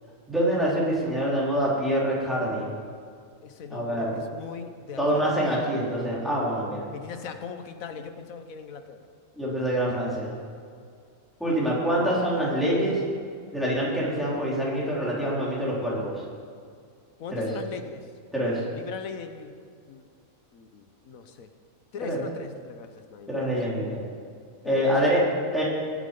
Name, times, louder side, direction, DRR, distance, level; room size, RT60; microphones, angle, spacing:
voice 1, 0.3-2.8 3.7-4.1 5.0-6.9 9.4-10.3 11.4-13.0 13.5-16.2 17.3-17.5 18.3-18.6 22.0-22.2 23.3-24.1 24.6-25.2 25.5-25.6, equal, ahead, -7 dB, 3.8 m, -25 dB
voice 2, 3.4-5.2 6.9-9.1 17.2-18.1 18.7-19.5 19.9-20.1 20.5-21.5 21.9-23.5 24.6-24.9 25.2-25.3, left 6 dB, 85° left, 8 dB, 1.4 m, -40 dB
19.5 x 7.5 x 5.4 m, 2.2 s
omnidirectional pair, 1.4 m